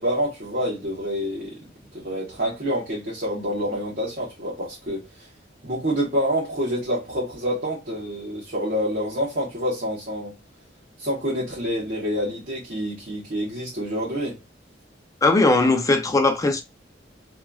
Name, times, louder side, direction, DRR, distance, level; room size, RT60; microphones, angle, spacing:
voice 1, 0.0-1.6 1.9-5.3 5.6-10.3 11.0-14.4, equal, 55° right, 1.1 m, -27 dB
voice 2, 15.2-16.6, left 2 dB, 20° left, 0.4 m, -19 dB
2.9 x 2.3 x 2.3 m
head